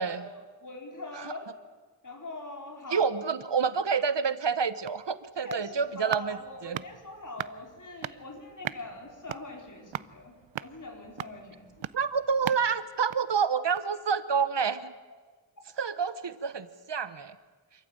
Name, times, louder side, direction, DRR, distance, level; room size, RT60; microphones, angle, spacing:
voice 1, 0.0-1.5 2.0-3.1 5.4-10.3 10.6-11.8, left 2 dB, 40° left, 2 dB, 4.6 m, -43 dB
voice 2, 2.9-6.8 11.9-14.9 15.8-17.4, right 6 dB, 65° right, 13 dB, 1.1 m, -28 dB
sound 1, 4.5-14.0 14.4-14.5, right 10 dB, 85° right, 0.7 m, -41 dB
26.5 x 14.5 x 8.8 m, 1.4 s
wide cardioid pair, 85°, 45 cm